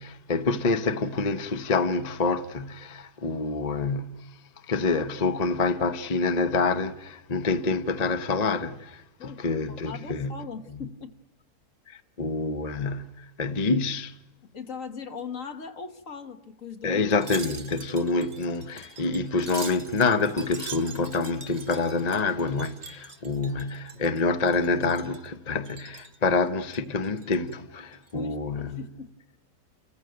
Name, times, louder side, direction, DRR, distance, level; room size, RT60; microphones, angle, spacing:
voice 1, 0.0-4.3 4.7-10.4 11.9-14.1 16.8-28.8, left 3 dB, 35° left, 0.8 m, -27 dB
voice 2, 9.7-11.1 14.5-17.0 28.1-29.1, left 6 dB, 60° left, 1.8 m, -39 dB
Wind chime, 17.1-24.2 24.5-25.3 25.6-26.2 26.6-27.5 27.9-28.1, right 5 dB, 40° right, 1.1 m, -43 dB
30.0 x 14.5 x 9.1 m
omnidirectional pair, 1.6 m